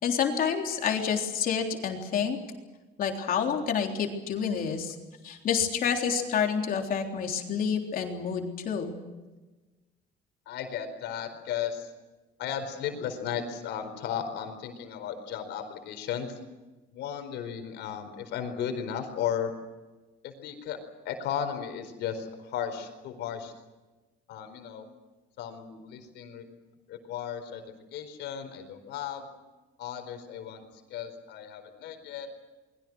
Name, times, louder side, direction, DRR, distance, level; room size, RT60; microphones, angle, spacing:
voice 1, 0.0-2.4 3.0-5.0 5.2-9.0, left 7 dB, 50° left, 2 dB, 3.7 m, -28 dB
voice 2, 10.5-11.9 12.4-16.4 16.9-19.5 20.2-20.8 21.0-23.5 24.3-24.9 25.4-26.4 26.9-27.6 27.9-29.3 29.8-32.3, left 8 dB, 75° left, 7 dB, 4.5 m, -35 dB
30.0 x 22.0 x 6.3 m, 1.2 s
cardioid pair, 135°, 18 cm